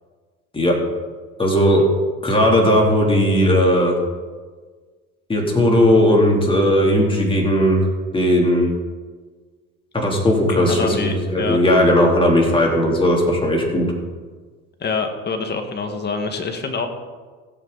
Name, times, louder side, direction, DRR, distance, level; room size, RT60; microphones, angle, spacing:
voice 1, 1.4-1.8 2.2-3.9 5.3-7.8 8.1-8.7 9.9-13.9, equal, 15° left, -1 dB, 3.1 m, -17 dB
voice 2, 10.5-11.6 14.8-16.9, left 4 dB, 35° left, 5 dB, 1.8 m, -25 dB
16.5 x 7.9 x 4.1 m, 1.5 s
supercardioid pair, 95°, 30 cm